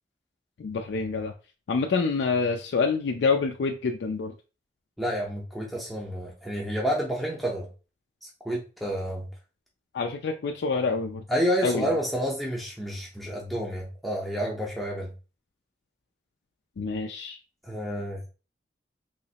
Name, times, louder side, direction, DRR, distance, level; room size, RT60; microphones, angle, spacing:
voice 1, 0.6-1.3 1.7-4.3 9.9-11.2 11.6-11.9 16.8-17.4, left 4 dB, 85° left, 3 dB, 0.4 m, -27 dB
voice 2, 5.0-7.7 8.4-9.3 11.3-15.1 17.6-18.2, equal, ahead, -3 dB, 0.5 m, -29 dB
3.1 x 2.9 x 2.8 m, 0.33 s
head